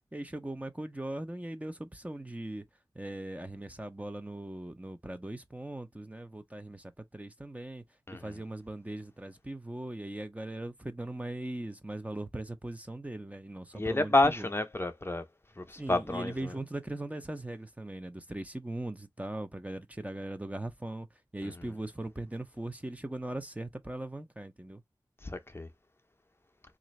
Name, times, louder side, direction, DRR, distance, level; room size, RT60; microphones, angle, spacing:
voice 1, 0.1-2.6 3.0-7.8 8.2-14.5 15.8-21.1 21.3-24.8, right 1 dB, 15° right, 0.6 m, -39 dB
voice 2, 8.1-8.4 13.7-15.2 15.6-16.6 21.4-21.7 25.2-25.7, left 2 dB, 30° left, 0.6 m, -30 dB
3.7 x 2.5 x 3.1 m
wide cardioid pair, 60°, 9 cm